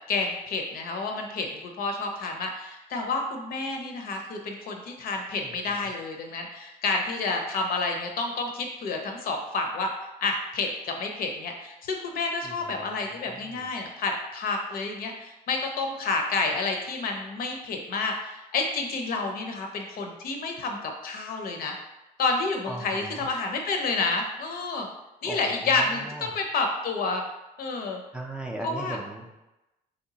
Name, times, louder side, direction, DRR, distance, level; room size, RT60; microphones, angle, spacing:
voice 1, 0.1-9.9 10.2-21.8 22.2-24.9 25.2-27.2 27.6-28.0 28.6-29.0, left 3 dB, 60° left, 3 dB, 0.6 m, -29 dB
voice 2, 5.4-5.9 12.4-13.7 22.6-23.2 25.2-26.3 28.1-29.4, right 1 dB, 5° right, -1 dB, 0.3 m, -39 dB
3.4 x 2.8 x 2.7 m, 0.97 s
cardioid pair, 110°, 17 cm